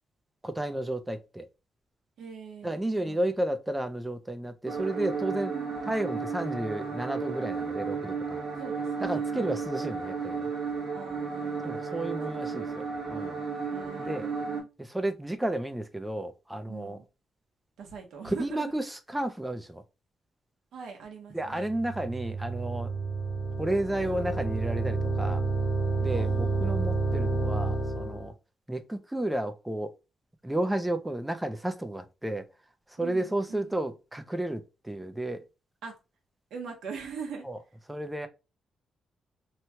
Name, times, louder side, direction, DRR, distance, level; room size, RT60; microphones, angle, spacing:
voice 1, 0.4-1.5 2.6-5.5 5.8-8.4 9.0-10.5 11.6-13.4 14.0-14.3 14.8-17.0 18.2-19.8 21.3-22.9 23.6-25.4 26.0-28.3 28.7-29.9 30.4-32.5 32.9-35.4 37.4-37.6 37.9-38.3, right 1 dB, 10° right, 0.4 m, -32 dB
voice 2, 2.2-3.3 5.5-5.8 8.6-9.6 10.9-11.8 13.7-14.7 16.7-17.0 17.8-18.7 20.7-21.7 26.1-27.0 33.0-33.8 35.8-36.0 36.5-37.5, right 6 dB, 80° right, 1.0 m, -43 dB
sound 1, 4.7-14.6, right 5 dB, 55° right, 1.0 m, -33 dB
sound 2, 21.5-28.3, right 3 dB, 55° left, 1.1 m, -30 dB
3.0 x 2.2 x 2.8 m
cardioid pair, 110°, 0 cm